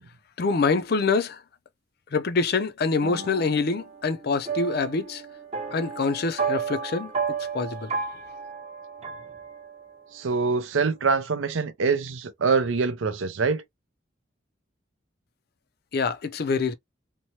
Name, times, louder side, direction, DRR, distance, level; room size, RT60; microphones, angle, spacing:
voice 1, 0.4-1.4 2.1-5.2 5.7-7.1 7.5-7.9 15.9-16.7, left 4 dB, 50° left, 0.4 m, -25 dB
sound 1, 3.0-10.0, right 5 dB, 35° right, 0.8 m, -33 dB
voice 2, 10.1-13.6, right 4 dB, 80° right, 0.5 m, -24 dB
3.0 x 2.1 x 2.7 m
head